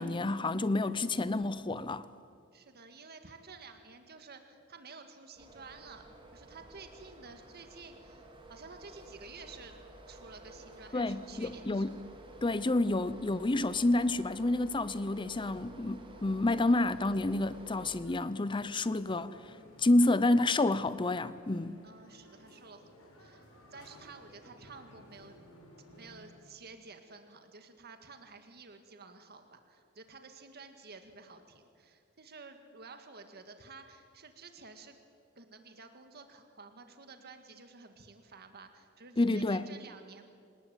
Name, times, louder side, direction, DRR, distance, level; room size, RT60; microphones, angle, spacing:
voice 1, 0.0-2.1 10.9-12.0 12.4-19.5 19.8-21.8 39.2-39.7, left 2 dB, 25° left, 0.6 m, -29 dB
voice 2, 2.5-6.1 6.3-9.8 10.1-12.0 12.5-12.8 21.8-23.4 23.7-25.4 26.0-35.0 35.4-40.3, right 4 dB, 50° right, 1.9 m, -52 dB
sound 1, 5.4-18.0, right 1 dB, 25° right, 3.0 m, -52 dB
sound 2, 17.1-26.3, equal, 90° left, 6.8 m, -57 dB
27.0 x 19.5 x 9.2 m
head